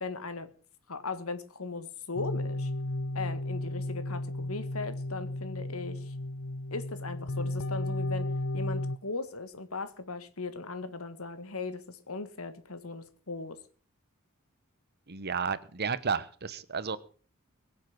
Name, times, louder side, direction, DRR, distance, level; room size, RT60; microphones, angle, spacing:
voice 1, 0.0-0.5 0.9-2.7 3.1-6.2 6.7-8.3 8.5-13.6, left 3 dB, 90° left, 11 dB, 1.7 m, -38 dB
sound 1, 2.2-9.0, left 1 dB, 75° left, 0.7 m, -34 dB
voice 2, 15.1-17.0, right 5 dB, 50° right, 15 dB, 1.1 m, -32 dB
22.5 x 7.5 x 6.0 m, 0.41 s
head